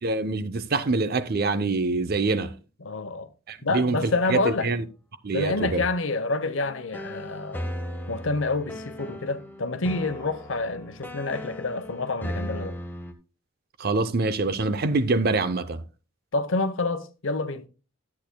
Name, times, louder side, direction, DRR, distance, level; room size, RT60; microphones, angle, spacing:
voice 1, 0.0-2.5 3.5-4.8 5.2-5.9 13.8-15.8, right 3 dB, 45° right, 0.6 m, -25 dB
voice 2, 2.8-3.3 3.6-4.7 5.3-7.7 8.1-12.8 16.3-17.6, left 3 dB, 70° left, 0.8 m, -28 dB
sound 1, 6.6-13.1, equal, 10° left, 0.9 m, -37 dB
13.0 x 8.5 x 2.2 m
head